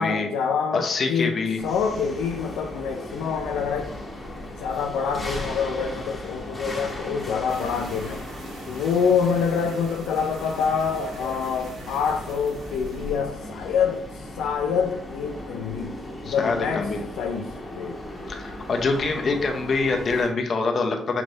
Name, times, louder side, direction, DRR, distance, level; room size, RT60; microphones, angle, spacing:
voice 1, 0.0-4.0 4.6-8.2 8.7-15.9 16.2-16.9 17.2-18.0, left 6 dB, 90° left, 2 dB, 0.5 m, -26 dB
voice 2, 0.7-1.6 16.2-17.0 18.3-21.2, left 4 dB, 50° left, 3 dB, 0.8 m, -25 dB
sound 1, 1.6-20.3, left 1 dB, 20° left, 1.6 m, -37 dB
sound 2, 7.5-14.6, right 1 dB, 70° right, 1.3 m, -44 dB
5.8 x 3.2 x 2.7 m, 0.77 s
cardioid pair, 90°, 0 cm